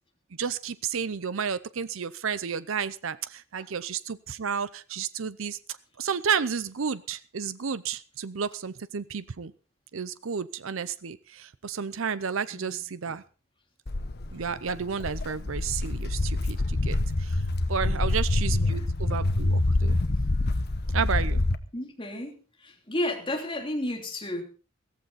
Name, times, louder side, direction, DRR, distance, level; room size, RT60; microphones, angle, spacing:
voice 1, 0.4-5.6 6.0-9.5 9.9-13.2 14.3-17.4 17.7-20.0 20.9-21.4, right 6 dB, 70° right, 15 dB, 0.6 m, -32 dB
voice 2, 12.5-13.2 17.8-18.2 18.5-18.9 21.7-24.4, left 1 dB, 25° left, 1 dB, 3.2 m, -34 dB
Walk footsteps, 13.9-21.6, left 2 dB, 50° left, 1.0 m, -26 dB
15.0 x 14.5 x 4.2 m, 0.36 s
head